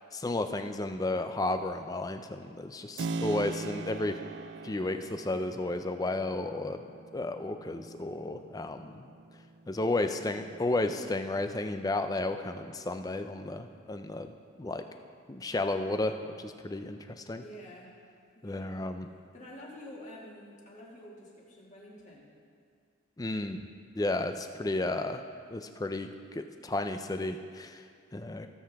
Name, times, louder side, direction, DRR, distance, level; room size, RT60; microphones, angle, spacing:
voice 1, 0.1-4.2 4.6-6.8 7.1-9.1 9.7-14.8 15.3-17.4 18.4-19.1 23.2-23.6 23.9-25.2 25.5-27.8 28.1-28.5, left 2 dB, 20° left, 8 dB, 0.4 m, -33 dB
Keyboard (musical), 3.0-11.5, right 3 dB, 60° right, 0.4 m, -42 dB
voice 2, 9.9-10.9 17.3-18.0 18.3-18.8 19.3-22.3, left 1 dB, 35° left, -4 dB, 2.1 m, -49 dB
17.5 x 7.6 x 3.5 m, 2.2 s
head